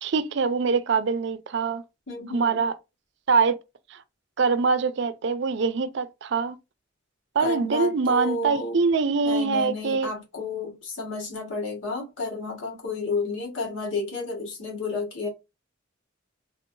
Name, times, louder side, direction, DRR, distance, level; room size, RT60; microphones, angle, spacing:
voice 1, 0.0-1.8 2.3-2.8 3.3-3.6 3.9-4.0 4.4-6.6 7.4-10.1, right 5 dB, 65° right, 0.4 m, -24 dB
voice 2, 2.1-2.6 7.4-8.8 9.2-15.3, left 3 dB, 85° left, 1.5 m, -31 dB
3.5 x 2.7 x 2.6 m
head